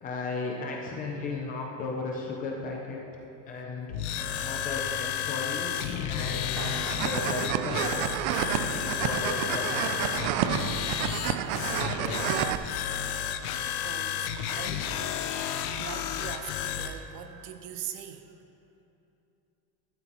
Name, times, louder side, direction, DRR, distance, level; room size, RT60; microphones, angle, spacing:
voice 1, 0.0-3.0 3.5-3.9 4.4-5.7 6.1-8.1 8.6-10.3 11.9-12.4, left 3 dB, 20° left, 0 dB, 0.4 m, -35 dB
sound 1, 3.9-17.0, left 9 dB, 65° left, 0.7 m, -32 dB
voice 2, 5.7-6.1 7.9-8.0 11.5-11.8 12.1-12.6 13.8-15.2 15.7-18.3, right 9 dB, 85° right, 7 dB, 1.0 m, -42 dB
sound 2, 6.6-12.5, right 11 dB, 65° right, 0.6 m, -30 dB
13.0 x 12.0 x 3.0 m, 2.8 s
cardioid pair, 175°, 48 cm